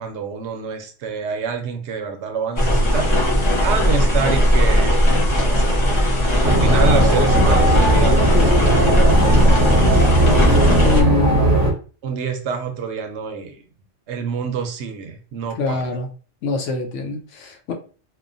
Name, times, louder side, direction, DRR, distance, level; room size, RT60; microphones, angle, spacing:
voice 1, 0.0-3.1 3.6-4.9 5.2-6.1 6.4-10.1 10.7-11.1 12.0-13.6 14.1-15.9, right 6 dB, 70° right, 0.8 m, -27 dB
sound 1, 2.6-11.0, equal, 35° left, 0.5 m, -17 dB
sound 2, 6.4-11.7, right 1 dB, 20° right, 0.6 m, -17 dB
voice 2, 6.6-7.0 10.8-11.6 15.6-16.1 16.4-17.7, left 2 dB, 80° left, 1.0 m, -24 dB
2.9 x 2.1 x 2.5 m
omnidirectional pair, 1.3 m